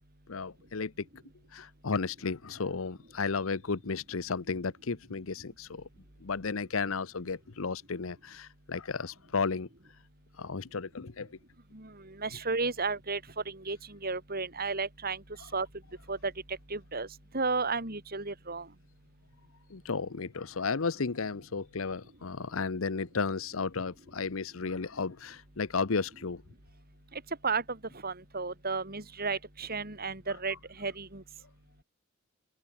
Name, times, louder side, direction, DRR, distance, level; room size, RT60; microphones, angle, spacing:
voice 1, 0.3-0.9 1.5-5.8 6.2-9.7 10.4-11.3 19.7-26.4, left 4 dB, 75° left, 0.9 m, -33 dB
voice 2, 11.7-13.2 13.4-15.2 15.5-15.7 16.1-17.1 17.3-18.7 27.1-27.8 28.0-31.2, right 4 dB, 45° right, 5.0 m, -33 dB
open air
head